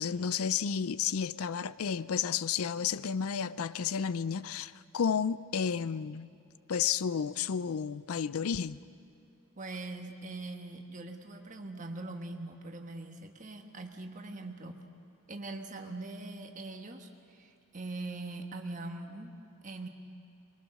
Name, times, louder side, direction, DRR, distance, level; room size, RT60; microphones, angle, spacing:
voice 1, 0.0-6.3 6.7-8.8, left 7 dB, 85° left, 0.5 m, -32 dB
voice 2, 9.6-14.8 15.3-19.9, right 2 dB, 35° right, 1.4 m, -42 dB
24.0 x 22.5 x 6.5 m
head